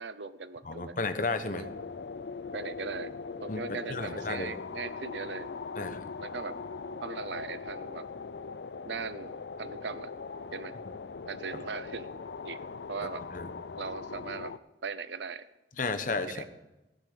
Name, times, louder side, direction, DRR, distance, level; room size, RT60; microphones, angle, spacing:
voice 1, 0.0-0.9 1.5-1.7 2.5-3.1 3.4-6.6 7.0-8.1 8.8-10.1 10.5-10.8 11.3-12.1 12.4-12.6 12.9-13.2 13.7-14.5 14.8-15.5 16.3-16.5, right 5 dB, 90° right, 14 dB, 0.7 m, -39 dB
voice 2, 0.6-1.7 3.5-4.5 5.8-6.1 11.5-11.7 13.3-13.5 15.8-16.5, left 3 dB, 50° left, 9 dB, 1.0 m, -33 dB
sound 1, 1.6-14.6, left 4 dB, 75° left, 0.5 m, -41 dB
15.5 x 9.9 x 5.2 m, 0.97 s
head